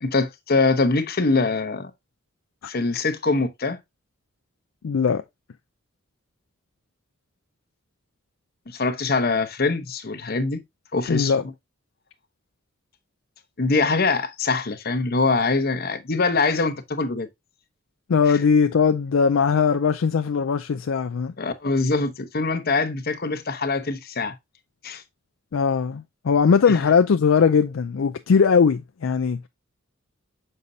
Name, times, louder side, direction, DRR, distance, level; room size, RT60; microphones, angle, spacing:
voice 1, 0.0-1.9 2.7-3.8 8.7-10.6 10.9-11.3 13.6-17.3 18.3-18.4 21.4-24.3 24.8-25.0, left 3 dB, 45° left, 0.9 m, -23 dB
voice 2, 4.8-5.2 11.1-11.4 18.1-21.3 25.5-29.4, left 6 dB, 65° left, 0.4 m, -20 dB
6.7 x 5.4 x 2.7 m
head